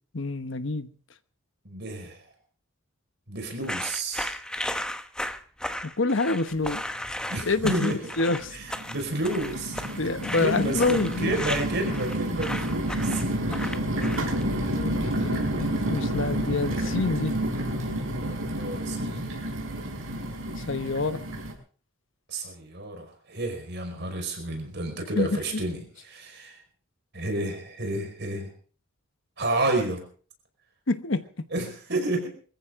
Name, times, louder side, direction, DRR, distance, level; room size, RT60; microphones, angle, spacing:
voice 1, 0.1-0.9 5.8-6.8 7.5-8.5 10.0-11.4 14.7-17.3 20.6-21.2 25.2-25.6 30.9-31.3, left 3 dB, 65° left, 1.1 m, -27 dB
voice 2, 1.6-2.2 3.3-4.3 7.3-8.0 8.5-10.1 10.4-13.2 18.5-19.3 22.3-26.6 27.1-28.5 29.4-30.0 31.5-32.3, right 2 dB, 55° right, 5.2 m, -30 dB
sound 1, 3.6-14.4, left 1 dB, 5° left, 0.9 m, -35 dB
sound 2, 6.5-6.6 7.0-7.7 8.3-21.5, right 1 dB, 75° right, 5.5 m, -30 dB
23.5 x 15.0 x 3.8 m
head